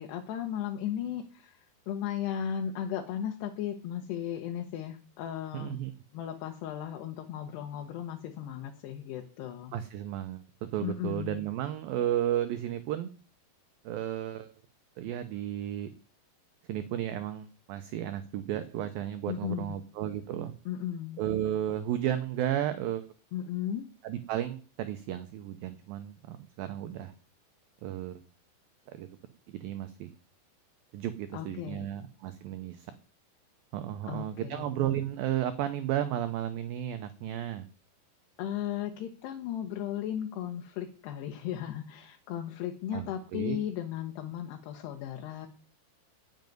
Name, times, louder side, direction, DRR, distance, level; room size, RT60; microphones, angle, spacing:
voice 1, 0.0-5.8 6.1-9.7 10.8-11.4 19.3-19.8 20.7-21.2 23.3-23.9 31.3-31.9 34.1-34.7 38.4-45.5, left 10 dB, 80° left, 4 dB, 3.0 m, -36 dB
voice 2, 5.5-5.9 9.7-13.1 13.8-14.5 15.0-15.9 16.7-20.5 21.2-23.1 24.0-27.1 27.8-28.2 28.9-29.1 29.5-30.1 30.9-32.9 33.7-37.7 42.9-43.6, right 11 dB, 75° right, 9 dB, 2.2 m, -33 dB
10.5 x 6.5 x 9.3 m, 0.40 s
omnidirectional pair, 4.9 m